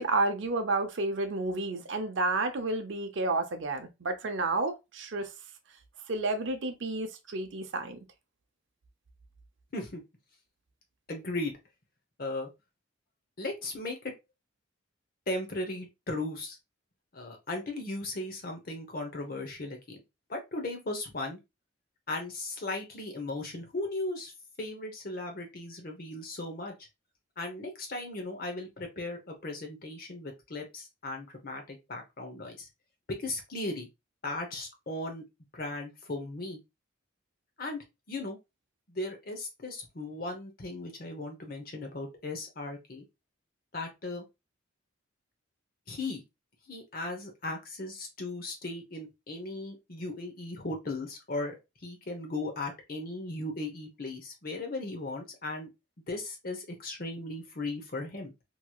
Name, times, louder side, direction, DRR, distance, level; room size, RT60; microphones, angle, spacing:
voice 1, 0.0-5.3 6.1-8.0, right 2 dB, 65° right, 0.6 m, -31 dB
voice 2, 11.1-11.5 12.2-12.5 13.4-14.1 15.3-16.6 17.1-20.0 20.3-21.4 22.1-24.3 24.6-26.9 27.4-32.7 33.2-33.9 34.2-35.2 35.5-36.6 37.6-38.4 38.9-43.0 43.7-44.2 45.9-46.2 46.7-55.7 56.1-58.3, left 2 dB, 45° left, 0.8 m, -37 dB
3.0 x 3.0 x 2.3 m
head